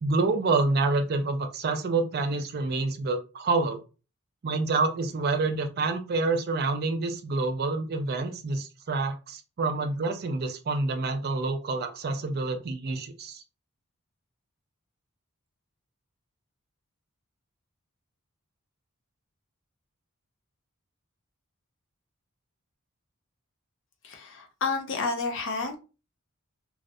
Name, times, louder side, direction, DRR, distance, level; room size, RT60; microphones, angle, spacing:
voice 1, 0.0-3.8 4.4-13.4, right 3 dB, 45° right, 7 dB, 0.4 m, -27 dB
voice 2, 24.0-25.8, left 4 dB, 60° left, 4 dB, 0.6 m, -30 dB
2.3 x 2.0 x 2.6 m, 0.32 s
head